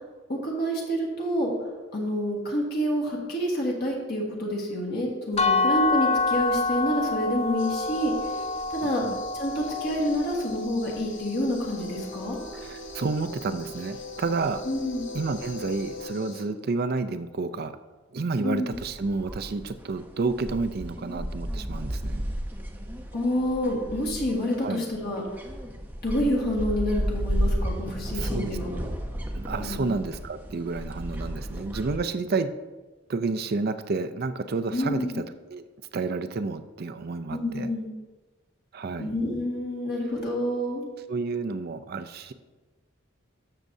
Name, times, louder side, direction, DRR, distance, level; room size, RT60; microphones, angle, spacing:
voice 1, 0.3-1.5 1.9-8.3 8.7-9.0 9.3-12.4 14.6-15.1 18.4-18.7 23.1-25.2 26.0-28.8 29.6-29.9 34.7-35.2 37.3-37.9 39.0-40.9, equal, 55° left, -2 dB, 1.6 m, -28 dB
sound 1, 5.4-11.2, left 3 dB, 35° left, 0.5 m, -27 dB
sound 2, 7.6-16.4, left 2 dB, 70° left, 1.1 m, -41 dB
voice 2, 12.5-14.6 15.1-17.7 18.1-22.2 24.6-24.8 28.1-28.9 29.3-32.5 33.1-35.7 35.9-37.7 38.7-39.2 41.1-42.3, right 3 dB, 50° right, 10 dB, 0.4 m, -30 dB
sound 3, 18.7-32.0, equal, 10° right, 0.7 m, -33 dB
13.5 x 6.6 x 2.7 m, 1.3 s
head